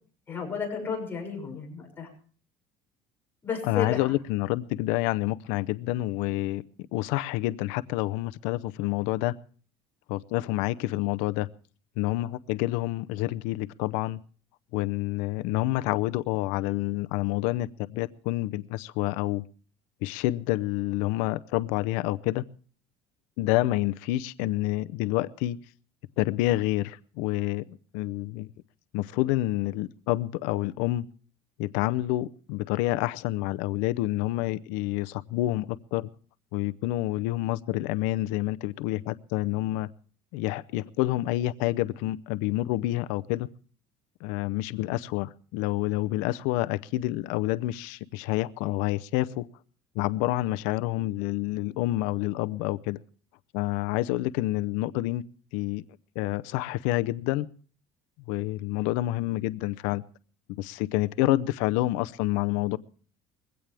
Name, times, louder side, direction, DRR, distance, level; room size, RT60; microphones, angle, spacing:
voice 1, 0.3-2.1 3.4-4.1, left 6 dB, 15° left, 6.5 m, -32 dB
voice 2, 3.6-6.6 6.9-9.3 10.1-11.5 12.0-14.2 14.7-19.4 20.0-22.4 23.4-25.6 26.2-28.5 28.9-31.0 31.6-36.1 36.5-39.9 40.3-43.5 44.2-49.5 49.9-53.0 53.5-55.2 55.5-55.8 56.2-57.5 58.3-60.0 60.5-62.8, left 17 dB, 80° left, 0.7 m, -28 dB
21.5 x 16.5 x 3.4 m
cardioid pair, 170°, 12 cm